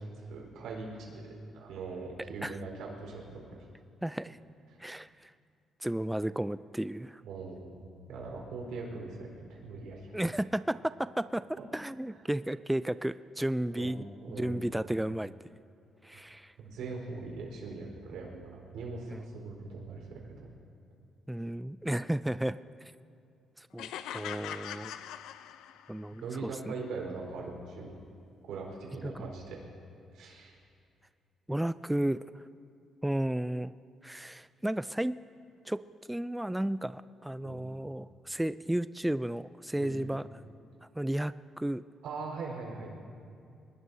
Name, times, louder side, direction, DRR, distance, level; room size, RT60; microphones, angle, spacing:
voice 1, 0.1-3.7 7.2-7.7 8.1-10.1 13.8-13.9 14.2-14.7 16.6-20.5 26.2-27.9 28.5-29.6 30.1-30.5 37.4-37.6 39.8-40.0 42.0-42.9, right 3 dB, 85° right, -1 dB, 4.3 m, -41 dB
voice 2, 4.0-4.4 4.8-5.3 5.8-7.2 10.1-15.3 16.0-16.5 19.1-19.2 21.3-22.6 23.6-25.0 25.9-26.7 29.0-29.3 31.5-32.4 33.0-33.7 34.0-35.2 35.7-35.8 36.1-40.3 41.0-41.8, right 1 dB, 5° right, 14 dB, 0.3 m, -33 dB
sound 1, 23.8-26.1, left 10 dB, 90° left, 0.5 m, -41 dB
22.5 x 20.0 x 2.8 m, 2.4 s
cardioid pair, 90°, 0 cm